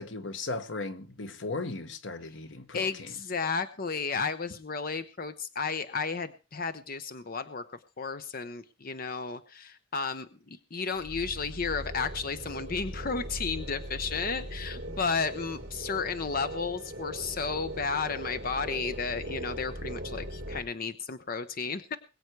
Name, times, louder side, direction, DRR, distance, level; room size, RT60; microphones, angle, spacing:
voice 1, 0.0-3.1, left 3 dB, 90° left, 1.3 m, -37 dB
voice 2, 2.7-7.6 8.0-22.0, left 5 dB, 50° left, 0.8 m, -33 dB
sound 1, 10.9-20.6, right 1 dB, 55° right, 3.7 m, -39 dB
21.5 x 8.0 x 4.7 m
head